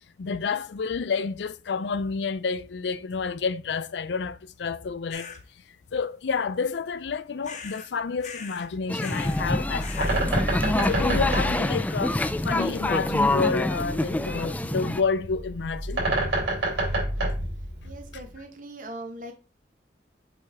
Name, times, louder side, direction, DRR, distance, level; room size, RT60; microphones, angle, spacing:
voice 1, 0.2-5.4 5.9-10.3 10.8-16.0, left 5 dB, 80° left, 0.5 m, -29 dB
sound 1, 5.1-5.4 7.4-7.9 8.2-8.7 9.0-9.5 9.8-10.3, left 6 dB, 40° left, 1.0 m, -41 dB
sound 2, 8.9-15.0, left 1 dB, 10° left, 0.3 m, -26 dB
Bird, 9.2-18.3, right 1 dB, 85° right, 4.0 m, -29 dB
voice 2, 17.8-19.3, right 1 dB, 45° right, 1.1 m, -40 dB
8.2 x 4.1 x 3.5 m
head